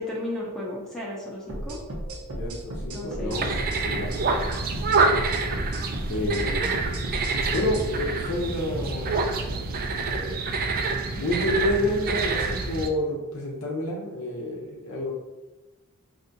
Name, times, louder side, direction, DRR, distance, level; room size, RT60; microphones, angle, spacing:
voice 1, 0.0-1.8 2.9-3.5, left 1 dB, 5° left, -5 dB, 0.6 m, -34 dB
sound 1, 1.5-7.9, right 1 dB, 80° right, 0.8 m, -34 dB
voice 2, 2.4-4.7 6.1-7.1 7.5-9.7 10.0-10.4 11.1-15.1, left 1 dB, 60° left, -3 dB, 0.6 m, -29 dB
sound 2, 3.3-12.9, right 3 dB, 40° right, 0.3 m, -27 dB
4.4 x 2.7 x 2.6 m, 1.1 s
head